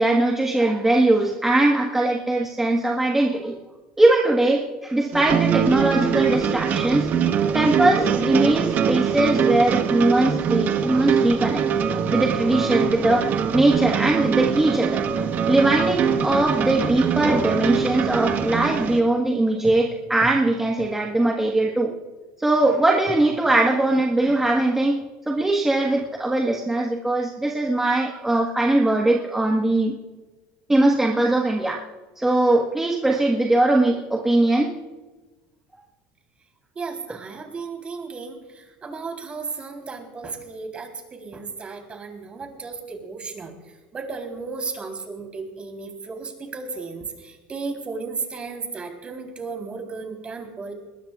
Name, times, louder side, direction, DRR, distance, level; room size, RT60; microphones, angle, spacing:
voice 1, 0.0-3.5 4.0-7.1 7.5-11.7 12.1-15.0 15.5-21.9 22.4-29.9 30.7-31.8 32.1-34.7, right 2 dB, 10° right, 0 dB, 1.5 m, -20 dB
sound 1, 5.1-19.0, right 7 dB, 50° right, 1.4 m, -23 dB
voice 2, 36.8-50.7, right 4 dB, 30° right, 3 dB, 3.8 m, -34 dB
21.0 x 19.5 x 2.5 m, 1.2 s
supercardioid pair, 110°, 4 cm